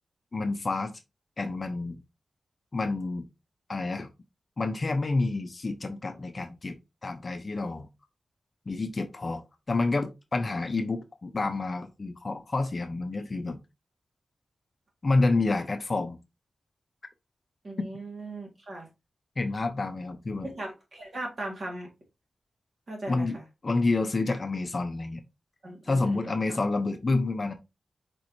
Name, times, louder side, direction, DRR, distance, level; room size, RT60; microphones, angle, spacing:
voice 1, 0.3-0.9 1.4-2.0 2.7-3.3 3.7-4.1 4.6-7.9 8.7-13.6 15.0-16.2 17.8-17.9 19.4-20.5 23.1-23.4 23.6-25.2 25.8-27.5, left 3 dB, 35° left, 0.6 m, -29 dB
voice 2, 17.6-18.9 20.4-21.9 22.9-23.4 25.6-26.6, right 1 dB, 45° right, 1.6 m, -38 dB
4.5 x 4.3 x 2.6 m
wide cardioid pair, 170°, 0 cm